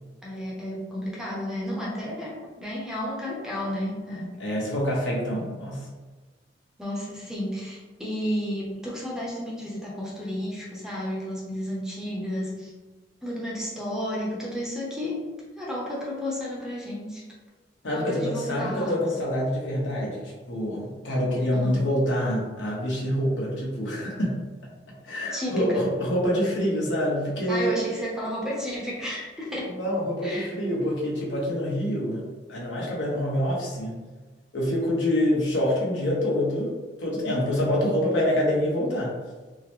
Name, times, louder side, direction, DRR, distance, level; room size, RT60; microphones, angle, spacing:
voice 1, 0.2-4.3 5.3-5.4 6.8-12.7 13.2-15.2 15.6-17.2 17.9-19.0 21.6-21.8 25.3-25.9 27.5-29.7 30.2-30.5, equal, 5° right, -5 dB, 0.6 m, -32 dB
voice 2, 4.4-5.9 17.8-24.4 25.0-27.8 29.7-34.0 34.5-36.7 37.0-39.2, equal, 75° left, -4 dB, 1.0 m, -26 dB
3.7 x 2.1 x 3.1 m, 1.3 s
head